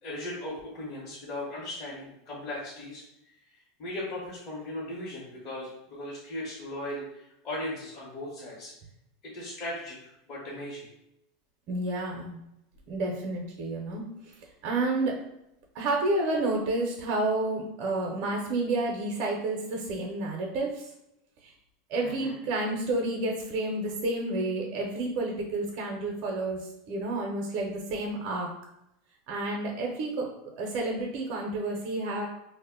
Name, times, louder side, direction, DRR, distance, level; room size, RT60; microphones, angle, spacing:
voice 1, 0.0-3.0 3.8-8.7 9.2-10.9 22.0-22.3, left 1 dB, 45° left, -7 dB, 0.8 m, -38 dB
voice 2, 11.7-12.4 12.9-14.3 14.6-15.2 15.7-20.9 21.4-21.5 21.9-28.5 29.3-30.3 30.6-32.3, right 2 dB, 55° right, 0 dB, 0.5 m, -30 dB
2.1 x 2.0 x 3.6 m, 0.82 s
supercardioid pair, 120°, 0 cm